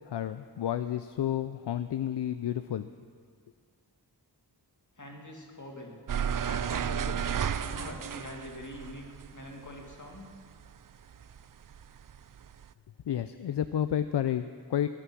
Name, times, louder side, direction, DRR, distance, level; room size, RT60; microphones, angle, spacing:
voice 1, 0.1-2.9 13.1-14.9, left 10 dB, 70° left, 11 dB, 0.5 m, -31 dB
voice 2, 5.0-6.0 6.4-7.3 7.6-9.1 9.3-10.3, left 1 dB, 45° left, 1 dB, 2.4 m, -44 dB
sound 1, 6.1-10.7 11.1-12.7, right 8 dB, 50° right, 0.5 m, -33 dB
17.5 x 9.9 x 6.2 m, 2.2 s
wide cardioid pair, 65°, 42 cm